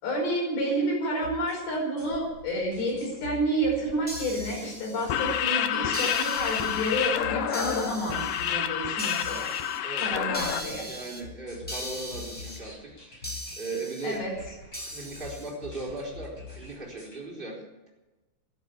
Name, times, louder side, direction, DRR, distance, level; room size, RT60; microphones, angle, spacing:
voice 1, 0.0-9.5 10.0-11.0 14.0-14.3, right 1 dB, 75° left, -1 dB, 7.3 m, -30 dB
sound 1, 1.2-17.2, left 2 dB, 25° left, 6.2 m, -45 dB
sound 2, 4.1-5.4 5.9-7.1 7.5-8.5 9.0-9.8 10.3-11.2 11.7-12.6 13.2-14.2 14.7-15.5, equal, 5° left, 1.1 m, -39 dB
sound 3, 5.0-10.6, left 10 dB, 90° left, 1.9 m, -28 dB
voice 2, 9.8-10.3 10.9-14.2 14.8-17.6, right 2 dB, 10° right, -3 dB, 4.2 m, -38 dB
13.0 x 11.0 x 8.5 m, 1.1 s
omnidirectional pair, 5.1 m